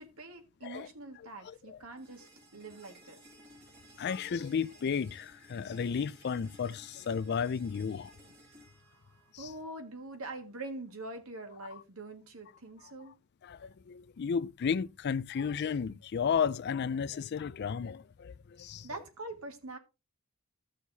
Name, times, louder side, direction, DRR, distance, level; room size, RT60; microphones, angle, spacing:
voice 1, 0.0-3.2 9.1-13.2 18.8-19.8, right 2 dB, 85° right, 1.9 m, -44 dB
voice 2, 1.4-1.8 4.0-8.1 9.3-9.5 13.4-18.9, left 6 dB, 50° left, 0.4 m, -33 dB
sound 1, 2.0-9.9, right 1 dB, 50° right, 5.8 m, -58 dB
15.0 x 6.4 x 2.7 m
head